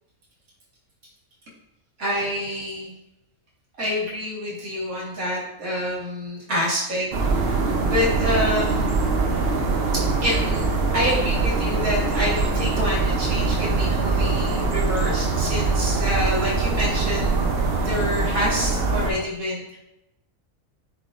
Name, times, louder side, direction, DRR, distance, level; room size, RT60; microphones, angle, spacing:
voice 1, 2.0-2.9 3.8-7.1 7.5-8.9 9.9-17.5 17.8-19.8, left 1 dB, 85° right, -5 dB, 2.3 m, -27 dB
sound 1, 7.1-19.1, right 3 dB, 50° right, 1.0 m, -23 dB
9.3 x 4.6 x 2.6 m, 0.85 s
omnidirectional pair, 1.4 m